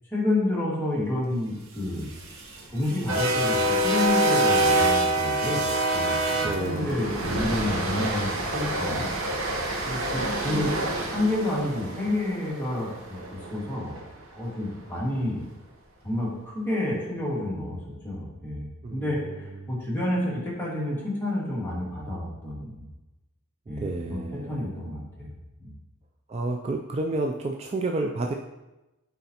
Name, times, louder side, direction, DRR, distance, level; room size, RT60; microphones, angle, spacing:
voice 1, 0.1-2.1 2.7-9.1 9.9-10.7 11.1-14.0 14.3-15.4 16.0-22.7 23.7-25.3 25.6-25.7, left 1 dB, 10° left, -7 dB, 1.8 m, -29 dB
sound 1, 1.8-14.0, right 1 dB, 70° right, 1.0 m, -26 dB
voice 2, 6.3-7.0 18.8-19.0 23.8-24.6 26.3-28.3, right 2 dB, 30° right, 2 dB, 0.3 m, -30 dB
9.2 x 4.1 x 2.9 m, 1.0 s
head